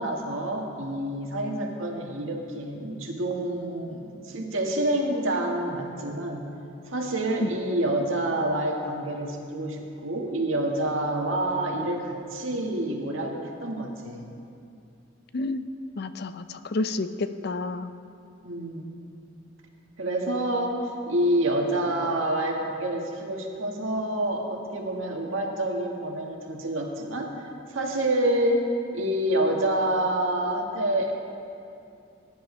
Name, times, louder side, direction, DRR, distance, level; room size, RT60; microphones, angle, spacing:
voice 1, 0.0-6.5 6.9-14.3 18.4-18.9 20.0-27.3 27.7-28.6 28.9-31.1, right 1 dB, 90° right, 0 dB, 1.7 m, -27 dB
voice 2, 15.3-15.7 16.0-17.9, left 2 dB, 55° left, 11 dB, 0.5 m, -30 dB
19.5 x 10.5 x 3.3 m, 2.6 s
head